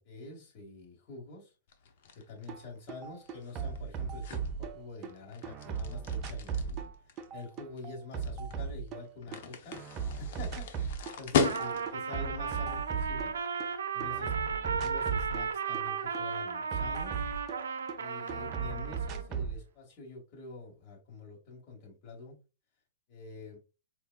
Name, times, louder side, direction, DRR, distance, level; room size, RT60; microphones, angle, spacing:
voice 1, 0.0-1.5 2.2-6.9 7.3-9.8 10.2-13.4 13.6-17.2 18.0-22.4 23.1-23.6, left 3 dB, 40° left, 2.0 m, -46 dB
sound 1, 1.7-12.1, left 6 dB, 60° left, 0.6 m, -37 dB
sound 2, 2.5-2.6 2.9-5.1 5.4-9.4 9.7-11.2 11.5-13.7 14.0-18.0 18.3-19.6, right 6 dB, 35° right, 0.5 m, -37 dB
Trumpet, 11.4-19.3, right 6 dB, 85° right, 0.5 m, -35 dB
4.5 x 2.3 x 2.4 m
hypercardioid pair, 120°, 0 cm